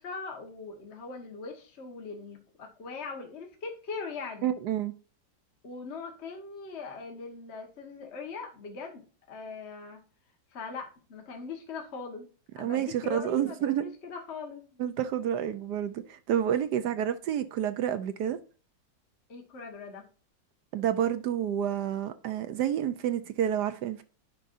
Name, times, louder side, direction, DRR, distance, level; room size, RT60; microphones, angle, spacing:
voice 1, 0.0-4.5 5.6-10.0 10.5-12.2 12.5-14.6 16.7-16.8 19.3-20.1, left 4 dB, 40° left, 1.4 m, -40 dB
voice 2, 4.4-4.9 12.6-13.9 14.8-18.4 20.7-24.0, right 10 dB, 70° right, 1.1 m, -29 dB
10.0 x 5.3 x 2.5 m
omnidirectional pair, 2.1 m